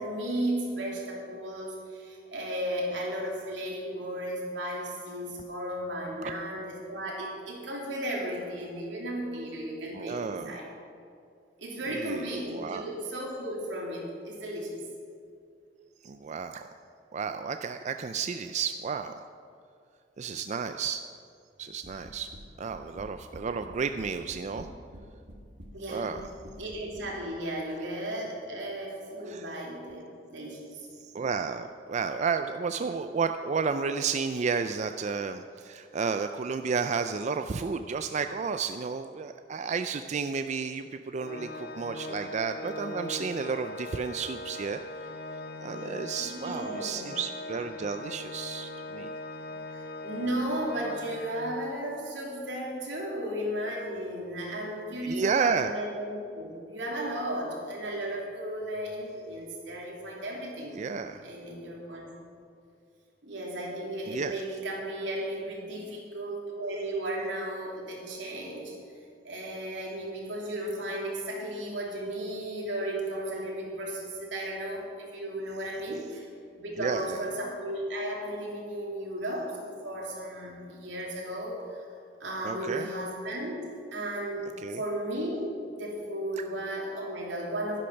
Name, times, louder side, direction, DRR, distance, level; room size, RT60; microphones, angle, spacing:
voice 1, 0.0-10.7 11.6-14.8 25.7-26.1 26.6-30.9 46.2-47.1 49.7-60.9 61.2-62.1 63.2-68.8 69.2-76.3 76.6-81.9 82.2-84.5 84.8-87.8, right 1 dB, 85° right, -2 dB, 2.9 m, -35 dB
voice 2, 9.9-10.6 11.9-12.8 16.0-16.7 17.1-19.1 20.2-21.0 21.6-22.3 22.6-24.7 25.9-26.2 29.3-29.5 31.0-44.8 45.6-49.1 55.0-55.7 60.8-61.2 64.1-64.4 76.8-77.2 82.4-82.9 84.6-84.8, right 5 dB, 40° right, 8 dB, 0.4 m, -32 dB
sound 1, 21.8-22.4 22.7-23.4 23.7-25.0 25.3-25.7 26.2-27.1, equal, 65° right, 2.0 m, -46 dB
Organ, 41.2-51.9, left 1 dB, 60° left, 0.6 m, -40 dB
12.0 x 10.5 x 5.8 m, 2.4 s
head